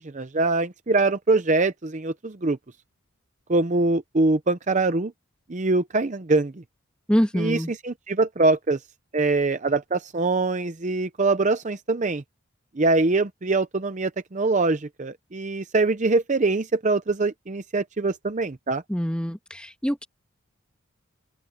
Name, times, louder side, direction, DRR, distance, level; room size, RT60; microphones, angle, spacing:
voice 1, 0.0-2.6 3.5-5.1 5.5-6.5 7.3-8.8 9.1-12.2 12.8-18.8, right 3 dB, 35° right, 0.6 m, -23 dB
voice 2, 7.1-7.7 18.9-20.1, equal, 5° left, 1.7 m, -25 dB
open air
head